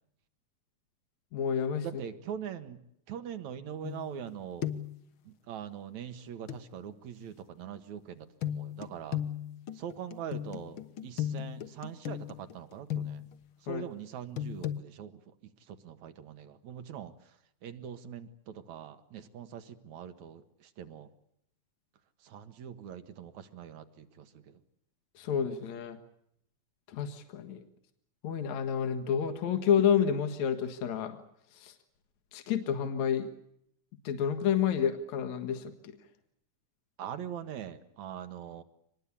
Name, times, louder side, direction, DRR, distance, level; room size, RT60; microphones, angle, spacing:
voice 1, 1.3-1.9 13.7-13.8 25.2-26.0 26.9-27.6 28.2-31.2 31.5-31.7 32.3-33.3 34.0-35.9, left 8 dB, 75° left, 7 dB, 2.9 m, -29 dB
voice 2, 1.8-2.8 3.1-4.7 5.2-9.2 9.7-13.2 13.6-15.2 15.7-17.1 17.6-21.1 22.2-24.6 37.0-38.6, right 9 dB, 75° right, 10 dB, 2.9 m, -42 dB
sound 1, 3.8-4.3 4.6-5.0 6.5-6.6 8.4-13.4 14.4-14.8, left 11 dB, 55° left, 1.7 m, -36 dB
25.5 x 20.5 x 8.5 m, 0.74 s
omnidirectional pair, 3.4 m